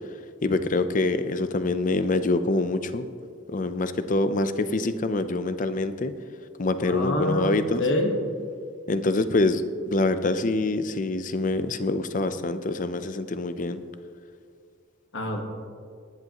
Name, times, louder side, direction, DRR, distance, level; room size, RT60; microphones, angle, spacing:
voice 1, 0.4-3.1 3.5-6.1 6.6-7.8 8.9-13.8, left 2 dB, 40° left, 11 dB, 0.5 m, -25 dB
voice 2, 6.8-8.1 15.1-15.4, left 1 dB, 65° left, 2 dB, 1.4 m, -26 dB
18.5 x 11.0 x 3.0 m, 2.2 s
head